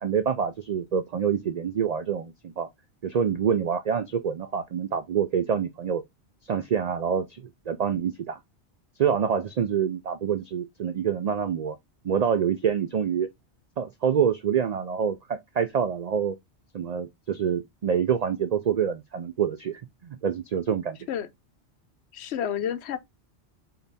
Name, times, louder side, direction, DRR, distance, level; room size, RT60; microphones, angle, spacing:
voice 1, 0.0-2.7 3.0-6.0 6.5-8.4 9.0-11.8 12.0-13.3 13.8-16.4 16.7-21.0, right 7 dB, 60° right, 0.4 m, -26 dB
voice 2, 22.1-23.0, left 9 dB, 75° left, 0.9 m, -30 dB
3.9 x 3.4 x 4.0 m
omnidirectional pair, 1.2 m